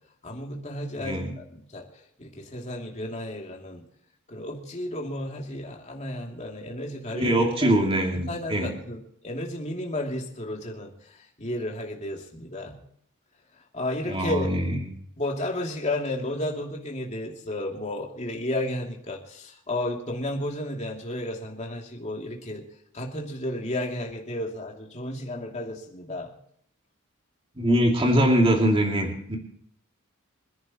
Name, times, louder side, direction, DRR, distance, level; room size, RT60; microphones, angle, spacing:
voice 1, 0.2-1.8 2.2-3.8 4.3-7.3 7.6-7.7 8.1-12.8 13.7-14.5 15.2-22.6 22.9-26.3, left 1 dB, 35° left, 0 dB, 2.8 m, -33 dB
voice 2, 1.0-1.3 7.1-8.7 14.0-14.8 27.6-29.4, right 1 dB, 25° right, 0 dB, 2.5 m, -23 dB
26.0 x 10.5 x 3.0 m, 0.67 s
head